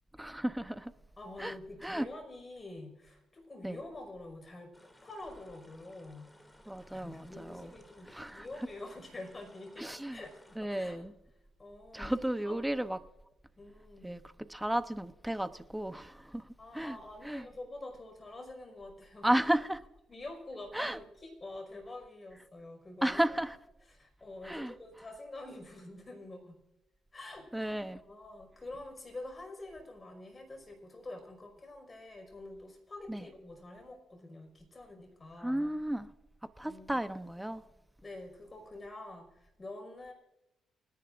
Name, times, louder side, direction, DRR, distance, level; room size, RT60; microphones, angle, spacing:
voice 1, 0.2-0.9 1.4-1.5 1.8-2.1 3.6-3.8 6.7-7.7 8.1-8.5 9.8-10.2 10.6-11.1 11.9-13.0 14.0-14.2 14.5-16.5 16.7-17.0 17.2-17.4 19.2-19.8 20.7-21.0 23.0-23.6 24.4-24.7 27.5-28.0 33.1-33.2 35.4-36.1 36.6-37.6, right 1 dB, 5° right, 0.9 m, -33 dB
voice 2, 1.2-4.7 5.0-6.3 6.9-11.0 11.6-12.6 13.6-14.2 16.6-19.4 20.1-23.2 23.9-26.6 27.1-27.7 28.1-35.7 36.7-37.0 38.0-40.1, left 2 dB, 25° left, 5.3 m, -47 dB
sound 1, 4.7-10.6, left 1 dB, 10° left, 2.7 m, -60 dB
29.5 x 10.5 x 2.6 m
cardioid pair, 90°, 0 cm